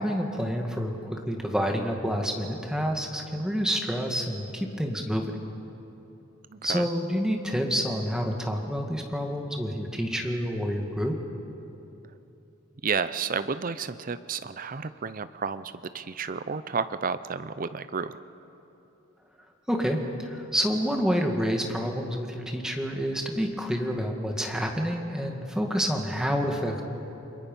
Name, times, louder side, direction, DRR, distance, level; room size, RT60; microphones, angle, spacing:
voice 1, 0.0-5.2 6.6-11.1 19.7-26.8, equal, 5° right, 2 dB, 1.9 m, -28 dB
voice 2, 6.5-6.9 12.8-18.2, right 5 dB, 40° right, 13 dB, 0.6 m, -31 dB
29.5 x 22.0 x 5.5 m, 3.0 s
head